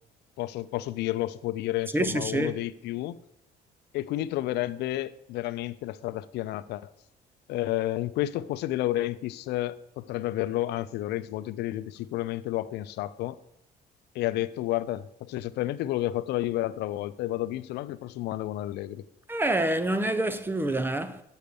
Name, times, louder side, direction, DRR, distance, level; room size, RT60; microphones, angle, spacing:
voice 1, 0.4-3.2 3.9-6.9 7.5-13.4 14.1-19.0, left 15 dB, 80° left, 0.5 m, -31 dB
voice 2, 1.9-2.5 19.3-21.2, right 1 dB, 10° right, 0.6 m, -27 dB
6.6 x 6.4 x 6.9 m
cardioid pair, 110°, 17 cm